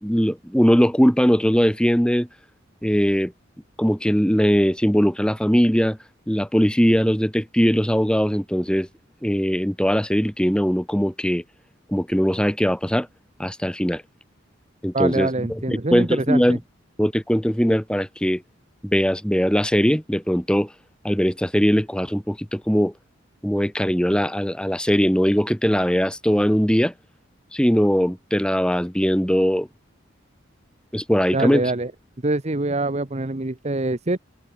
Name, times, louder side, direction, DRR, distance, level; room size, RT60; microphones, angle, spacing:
voice 1, 0.0-2.3 2.8-3.3 3.8-6.0 6.3-8.9 9.2-11.4 11.9-13.1 13.4-14.0 14.8-15.3 15.7-16.6 17.0-18.4 18.8-20.7 21.0-22.9 23.4-26.9 27.5-29.7 30.9-31.6, equal, 5° left, 2.3 m, -20 dB
voice 2, 14.9-16.6 31.3-31.9 32.2-34.2, right 2 dB, 35° right, 1.1 m, -24 dB
head